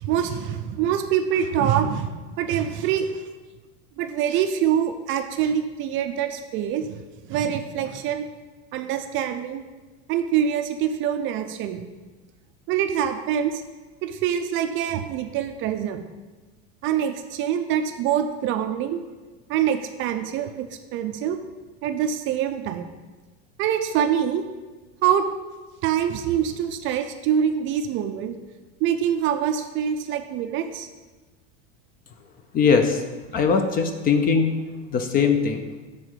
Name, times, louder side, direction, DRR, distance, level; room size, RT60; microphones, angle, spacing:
voice 1, 0.0-3.2 4.0-7.0 7.3-8.2 8.7-9.6 10.1-11.8 12.7-13.6 14.0-16.0 16.8-19.0 19.5-21.4 21.8-22.8 23.6-24.4 25.0-25.3 25.8-28.4 28.8-30.9, right 9 dB, 35° right, 7 dB, 0.4 m, -25 dB
voice 2, 32.5-33.0 33.3-34.5 34.9-35.7, left 5 dB, 25° left, 7 dB, 0.4 m, -20 dB
6.5 x 3.7 x 6.1 m, 1.3 s
supercardioid pair, 140°, 35 cm